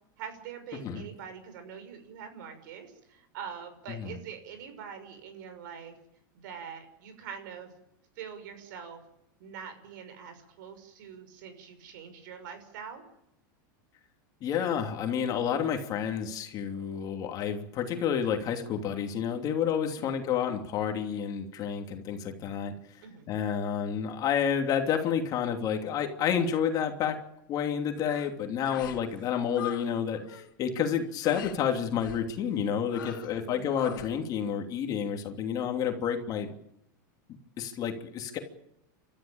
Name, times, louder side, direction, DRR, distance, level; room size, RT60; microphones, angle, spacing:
voice 1, 0.2-6.0 6.3-7.7 8.2-9.0 9.4-13.0 19.9-20.1 23.0-23.2 28.7-28.9 33.1-33.8, right 7 dB, 70° right, 9 dB, 6.2 m, -44 dB
voice 2, 0.7-1.0 3.9-4.2 14.4-22.7 23.3-27.2 27.5-36.5 37.6-38.4, left 8 dB, 35° left, 4 dB, 2.9 m, -30 dB
sound 1, 28.0-28.3 28.6-29.0 29.3-29.9 30.2-30.5 31.2-31.6 32.0-32.3 32.9-33.4 33.7-34.1, left 12 dB, 85° left, 2.7 m, -41 dB
30.0 x 13.5 x 8.9 m, 0.80 s
supercardioid pair, 140°, 11 cm